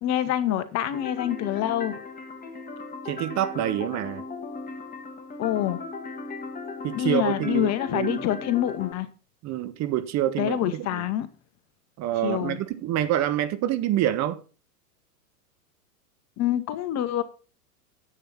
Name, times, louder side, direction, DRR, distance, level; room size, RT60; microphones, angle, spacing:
voice 1, 0.0-2.0 5.4-5.8 6.9-9.1 10.4-11.3 12.2-12.6 16.4-17.2, left 12 dB, 35° left, 1.3 m, -26 dB
sound 1, 0.9-8.9, left 3 dB, 15° left, 2.1 m, -37 dB
voice 2, 3.0-4.2 6.8-8.2 9.4-11.1 12.0-14.4, right 12 dB, 35° right, 1.3 m, -27 dB
11.0 x 8.1 x 5.8 m
hypercardioid pair, 105°, 47 cm